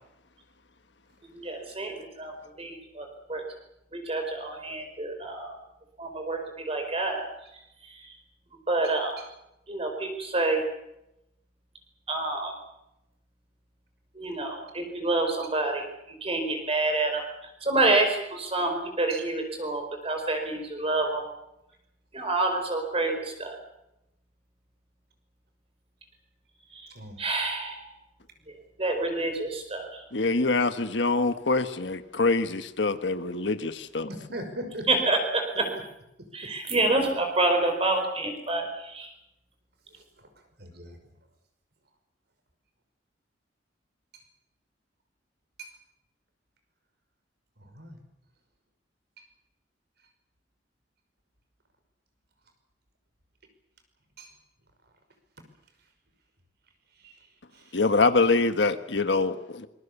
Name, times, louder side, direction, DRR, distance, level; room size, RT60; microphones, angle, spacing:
voice 1, 1.3-3.4 3.9-5.5 6.0-7.2 7.9-8.1 8.7-9.2 9.7-10.6 12.1-12.5 14.1-15.9 16.2-17.2 17.6-21.3 22.1-23.5 26.7-26.9 27.2-27.9 28.8-30.0 34.9-35.7 36.3-39.1, right 2 dB, 30° right, 4.8 m, -28 dB
voice 2, 30.1-34.1 57.7-59.7, left 3 dB, 70° left, 1.4 m, -25 dB
voice 3, 34.2-34.9 36.2-36.5 40.6-41.0 45.6-45.7 47.6-48.0 54.2-54.3 57.0-57.1 57.5-57.6, right 1 dB, 60° right, 5.7 m, -40 dB
25.5 x 22.0 x 7.2 m
head